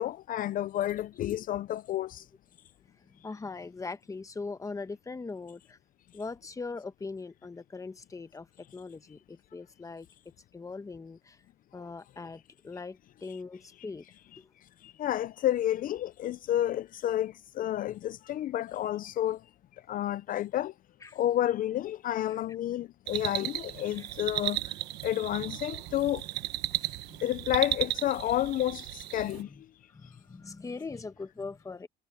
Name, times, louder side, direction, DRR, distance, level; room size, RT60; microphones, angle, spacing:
voice 1, 0.0-2.2 11.8-11.9 13.3-13.4 14.8-19.4 19.9-20.7 21.1-24.7 25.0-26.2 27.2-29.5, left 12 dB, 55° left, 0.5 m, -30 dB
voice 2, 3.1-5.8 6.1-8.5 8.7-10.1 10.5-11.4 11.7-14.0 14.4-14.5 21.0-21.2 23.9-24.1 26.7-27.3 29.4-29.6 29.9-31.9, left 4 dB, 20° left, 1.1 m, -41 dB
sound 1, 23.1-29.4, right 16 dB, 90° right, 1.2 m, -35 dB
cardioid pair, 110°, 17 cm